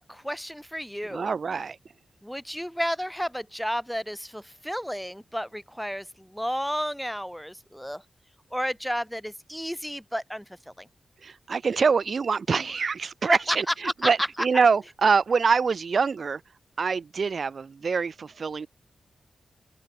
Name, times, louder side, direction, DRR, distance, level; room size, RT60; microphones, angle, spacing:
voice 1, 0.0-1.3 2.2-8.0 8.5-10.4 10.8-10.9 13.2-13.6 13.8-14.1, equal, ahead, 0.8 m, -31 dB
voice 2, 1.0-1.8 11.2-16.4 16.8-18.7, right 5 dB, 50° right, 1.0 m, -25 dB
open air
wide cardioid pair, 105°, 0 cm